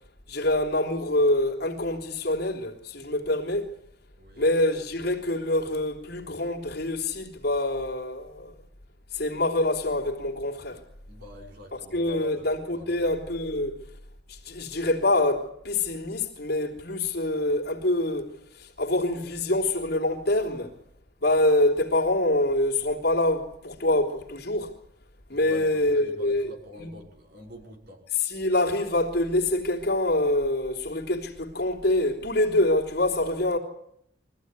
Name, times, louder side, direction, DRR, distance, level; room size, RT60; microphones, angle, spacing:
voice 1, 0.3-3.7 4.4-8.5 9.1-10.8 11.9-13.8 14.3-20.7 21.2-24.7 25.3-26.4 26.8-26.9 28.2-33.6, left 1 dB, 55° left, 3.3 m, -25 dB
voice 2, 4.2-4.5 11.1-13.1 25.3-28.0, left 2 dB, 55° right, 5.8 m, -46 dB
23.5 x 15.5 x 9.7 m
head